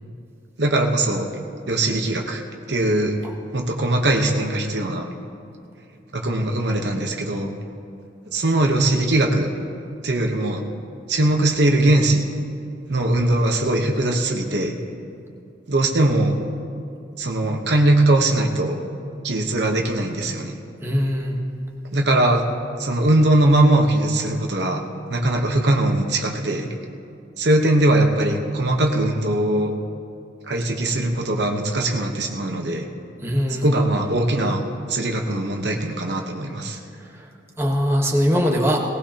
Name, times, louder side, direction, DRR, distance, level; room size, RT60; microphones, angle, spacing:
voice 1, 0.6-1.3 1.7-2.4 2.7-3.2 3.5-5.1 6.1-7.5 8.3-9.5 10.0-10.6 11.1-12.2 12.9-14.7 15.7-16.4 17.2-18.8 19.2-20.5 21.9-22.5 22.8-24.8 25.1-26.7 27.4-29.7 30.5-32.8 33.6-36.8, right 1 dB, 65° right, 2 dB, 1.1 m, -20 dB
voice 2, 20.8-21.3 33.2-33.7 37.6-38.8, equal, 15° right, -1 dB, 1.3 m, -21 dB
19.0 x 18.5 x 2.9 m, 2.6 s
head